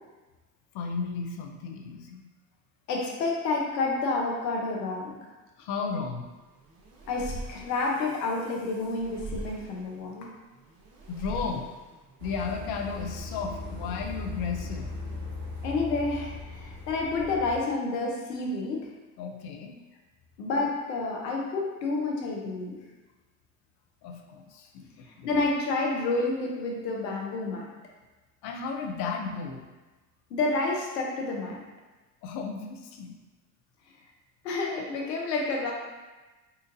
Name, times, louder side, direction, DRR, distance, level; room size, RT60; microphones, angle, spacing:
voice 1, 0.7-2.2 5.6-6.3 11.1-11.7 12.2-14.9 19.2-19.7 24.0-25.4 28.4-29.6 32.2-33.1, left 5 dB, 50° left, 3 dB, 0.6 m, -34 dB
voice 2, 2.9-5.2 7.1-10.3 15.6-18.9 20.4-22.8 25.1-27.7 30.3-31.6 34.4-35.7, left 3 dB, 80° left, -1 dB, 0.8 m, -29 dB
sound 1, 6.3-13.2, right 2 dB, 35° right, 0.8 m, -43 dB
sound 2, 12.2-17.6, left 3 dB, 90° right, 0.8 m, -38 dB
4.0 x 2.5 x 2.6 m, 1.2 s
hypercardioid pair, 70°, 49 cm